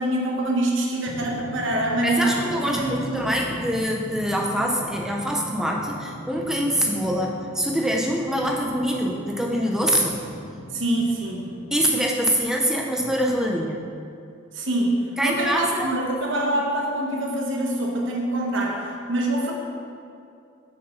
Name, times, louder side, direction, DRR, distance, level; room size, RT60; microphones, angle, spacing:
voice 1, 0.0-3.7 10.7-11.4 14.5-19.5, right 1 dB, 65° right, -1 dB, 1.0 m, -25 dB
Drum, 1.1-12.1, left 1 dB, 65° left, 0.7 m, -39 dB
voice 2, 2.0-10.6 11.7-13.9 15.2-15.9, equal, 5° right, 0 dB, 0.5 m, -24 dB
6.6 x 4.2 x 5.4 m, 2.5 s
head